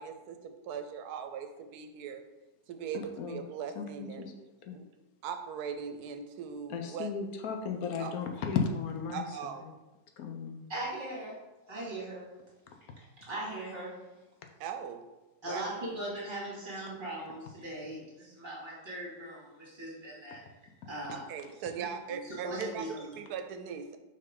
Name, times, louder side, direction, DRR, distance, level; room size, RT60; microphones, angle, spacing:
voice 1, 0.0-2.2 2.7-4.3 4.7-4.8 5.2-7.1 8.0-8.1 9.1-9.7 14.6-15.0 15.5-15.7 21.1-24.0, right 7 dB, 80° right, 7 dB, 1.1 m, -39 dB
voice 2, 3.8-4.3 4.7-4.8 6.7-9.2 10.2-10.7, left 6 dB, 75° left, 4 dB, 1.1 m, -34 dB
voice 3, 10.7-11.3 11.7-12.2 13.2-13.9 15.4-20.4 20.8-21.2 21.8-23.2, right 1 dB, 30° right, -5 dB, 2.4 m, -39 dB
6.3 x 4.5 x 3.7 m, 1.1 s
omnidirectional pair, 1.6 m